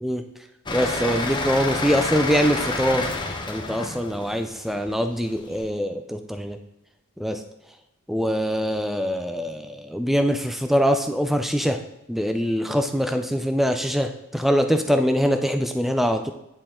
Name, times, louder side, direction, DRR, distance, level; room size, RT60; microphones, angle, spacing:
sound 1, 0.7-5.6, left 2 dB, 20° left, 0.7 m, -29 dB
voice 1, 0.7-3.1 3.5-6.6 7.2-7.4 8.1-11.8 12.1-16.3, equal, ahead, 6 dB, 0.3 m, -23 dB
9.4 x 4.6 x 3.7 m, 0.90 s
head